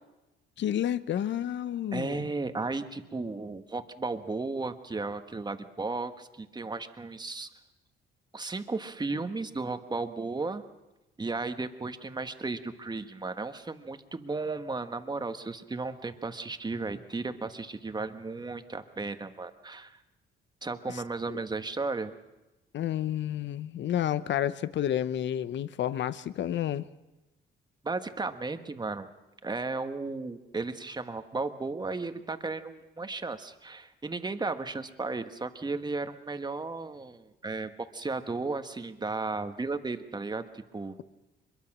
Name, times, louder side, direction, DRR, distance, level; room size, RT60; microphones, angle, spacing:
voice 1, 0.6-2.3 21.3-21.4 22.7-26.8, left 11 dB, 65° left, 15 dB, 0.8 m, -30 dB
voice 2, 1.9-7.5 8.3-10.6 11.2-20.0 20.6-22.1 27.8-29.1 29.4-41.0, right 3 dB, 20° right, 9 dB, 1.4 m, -34 dB
23.5 x 22.5 x 6.2 m, 1.0 s
cardioid pair, 90°, 20 cm